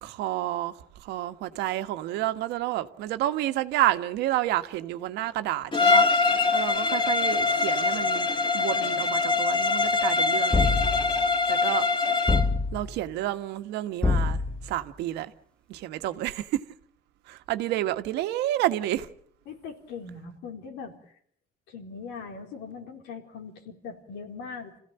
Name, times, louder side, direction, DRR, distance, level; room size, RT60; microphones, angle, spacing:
voice 1, 0.0-6.0 6.5-8.3 8.5-10.8 11.5-11.9 12.7-15.3 15.7-16.6 17.3-19.1, right 14 dB, 85° right, 1.5 m, -30 dB
Bowed string instrument, 5.7-12.5, left 3 dB, 30° left, 2.8 m, -23 dB
sound 1, 10.5-11.3 12.3-13.0 14.0-14.8, left 3 dB, 5° left, 1.1 m, -25 dB
voice 2, 19.5-21.2 21.7-24.8, left 5 dB, 90° left, 4.0 m, -40 dB
27.0 x 16.0 x 8.9 m
cardioid pair, 110°, 17 cm